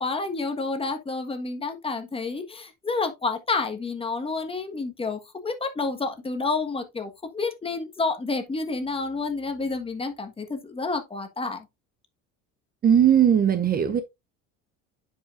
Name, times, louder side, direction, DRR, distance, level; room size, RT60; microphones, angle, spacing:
voice 1, 0.0-11.6, left 3 dB, 15° left, 1.4 m, -29 dB
voice 2, 12.8-14.0, right 9 dB, 30° right, 0.6 m, -19 dB
9.8 x 5.6 x 2.5 m
cardioid pair, 125°, 31 cm